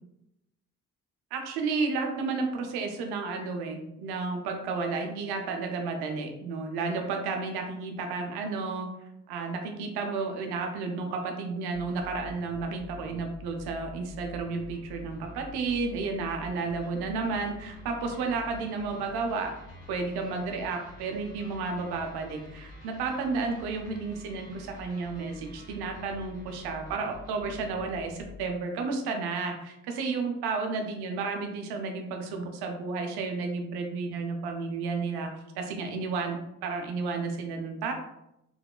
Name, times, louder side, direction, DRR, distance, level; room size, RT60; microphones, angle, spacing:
voice 1, 1.3-8.9 9.3-19.5 19.9-35.3 35.6-37.9, right 4 dB, 75° right, 3 dB, 0.6 m, -32 dB
sound 1, 11.7-28.5, left 2 dB, 75° left, 1.1 m, -47 dB
3.0 x 2.0 x 2.3 m, 0.85 s
hypercardioid pair, 45°, 38 cm